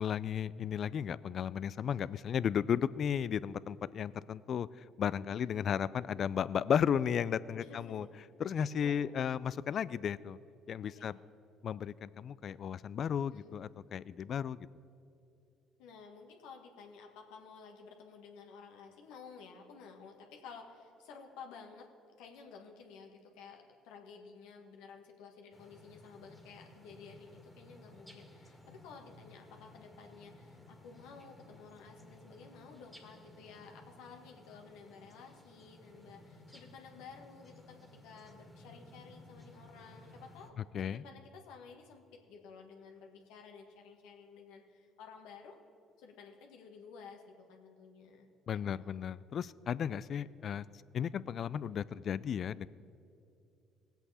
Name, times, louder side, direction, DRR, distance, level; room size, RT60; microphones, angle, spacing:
voice 1, 0.0-4.7 5.0-8.1 8.4-10.4 10.7-11.2 11.6-14.7 40.7-41.0 48.5-50.6 50.9-52.7, left 8 dB, 55° left, 19 dB, 0.3 m, -34 dB
voice 2, 7.5-8.1 8.5-9.2 10.8-11.1 13.3-13.5 15.8-21.9 22.2-40.5 40.8-45.6 46.0-48.9, left 5 dB, 80° left, 2 dB, 1.5 m, -53 dB
sound 1, 25.5-40.5, left 1 dB, 5° right, 2.0 m, -57 dB
19.0 x 8.1 x 4.2 m, 2.7 s
hypercardioid pair, 65°, 0 cm